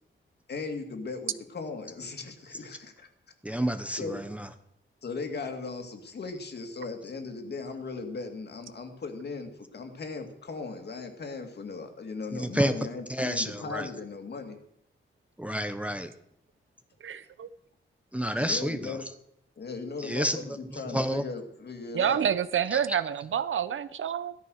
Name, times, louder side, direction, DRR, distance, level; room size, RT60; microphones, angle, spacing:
voice 1, 0.5-3.1 3.5-3.6 4.0-4.2 5.0-14.6 18.4-19.0 19.6-22.2, left 4 dB, 55° left, 5 dB, 2.4 m, -38 dB
voice 2, 3.4-4.5 12.3-12.7 13.1-13.9 15.4-16.1 18.1-19.0 20.0-21.2 22.7-23.0, equal, 5° right, 8 dB, 0.8 m, -30 dB
voice 3, 17.0-17.5 21.9-24.3, right 8 dB, 70° right, 14 dB, 0.9 m, -28 dB
16.5 x 13.5 x 6.5 m, 0.73 s
wide cardioid pair, 170°, 21 cm